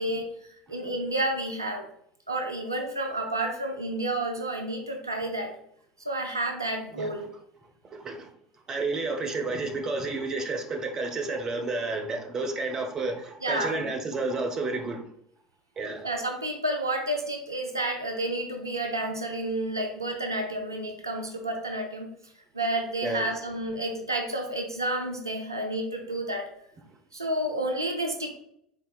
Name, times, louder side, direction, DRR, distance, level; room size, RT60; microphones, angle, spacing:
voice 1, 0.0-1.9 2.3-5.5 6.1-7.3 13.4-13.9 16.0-22.1 22.5-26.5 27.1-28.4, right 1 dB, 85° right, 3 dB, 0.4 m, -30 dB
voice 2, 7.9-8.3 8.7-15.0 15.8-16.1 23.0-23.3, right 3 dB, 30° right, 3 dB, 0.7 m, -31 dB
4.1 x 3.4 x 2.3 m, 0.69 s
figure-of-eight pair, 70°, 2 cm